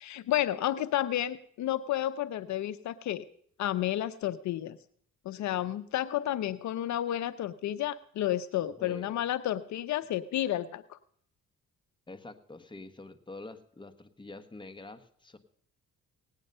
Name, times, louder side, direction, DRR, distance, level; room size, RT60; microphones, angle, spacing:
voice 1, 0.0-3.2 3.6-4.8 5.3-11.0, left 12 dB, 70° left, 14 dB, 0.6 m, -31 dB
voice 2, 8.8-9.2 12.1-15.4, left 2 dB, 15° left, 8 dB, 1.3 m, -46 dB
18.0 x 9.1 x 5.4 m, 0.65 s
cardioid pair, 90°, 30 cm